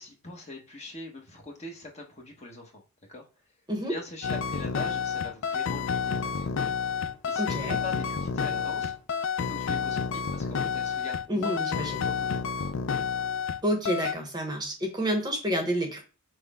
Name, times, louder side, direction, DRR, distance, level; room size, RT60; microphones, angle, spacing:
voice 1, 0.0-2.8 3.1-3.3 3.9-6.5 7.2-8.9 9.4-12.4, left 2 dB, 30° left, 1 dB, 1.1 m, -43 dB
sound 1, 4.2-13.6 13.9-14.1, left 6 dB, 60° left, 0.4 m, -29 dB
voice 2, 7.4-7.8 11.3-12.1 13.6-16.0, equal, 20° right, 3 dB, 0.9 m, -29 dB
6.1 x 2.2 x 3.5 m, 0.34 s
head